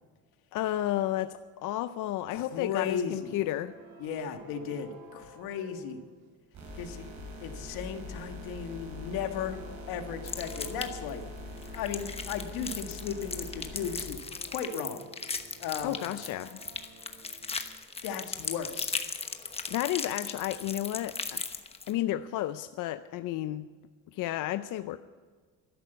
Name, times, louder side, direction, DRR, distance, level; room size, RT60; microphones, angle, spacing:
voice 1, 0.5-3.8 15.8-16.6 19.7-21.6 21.9-23.7 24.1-25.0, left 13 dB, 60° left, 11 dB, 0.6 m, -32 dB
sound 1, 2.1-6.7 7.0-12.5 12.8-12.9 13.9-17.9 19.0-19.1, right 2 dB, 85° right, 2.6 m, -53 dB
voice 2, 2.3-3.4 4.0-6.0 6.7-7.1 7.4-9.6 9.9-11.2 11.7-15.1 15.6-16.0 18.0-19.0, left 7 dB, 85° left, 6 dB, 1.8 m, -36 dB
sound 2, 6.5-14.1, left 2 dB, 50° right, 6.3 m, -43 dB
sound 3, 10.3-11.1 11.6-21.9, left 4 dB, 15° left, 1.0 m, -37 dB
13.0 x 11.0 x 8.1 m, 1.5 s
cardioid pair, 135°, 35 cm